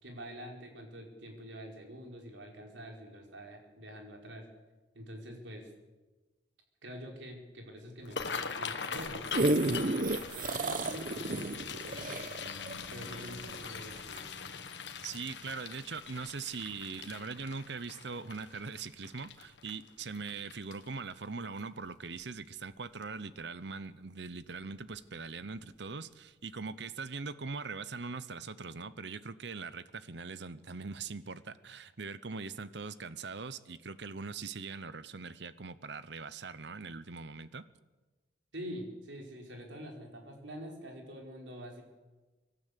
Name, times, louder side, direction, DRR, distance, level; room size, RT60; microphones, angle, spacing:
voice 1, 0.0-4.5 4.9-5.7 6.8-11.6 11.8-12.3 12.9-14.3 38.5-41.8, equal, 90° right, 1 dB, 4.6 m, -46 dB
sound 1, 8.0-21.1 21.6-21.9 22.2-22.6 23.0-23.2 24.4-24.6 24.9-25.1 25.5-25.6, left 5 dB, 75° left, 1.5 m, -42 dB
sound 2, 9.0-13.6 14.2-14.3, right 2 dB, 45° right, 0.9 m, -31 dB
voice 2, 15.0-37.7, right 4 dB, 70° right, 15 dB, 0.9 m, -41 dB
25.0 x 12.5 x 8.3 m, 1.2 s
head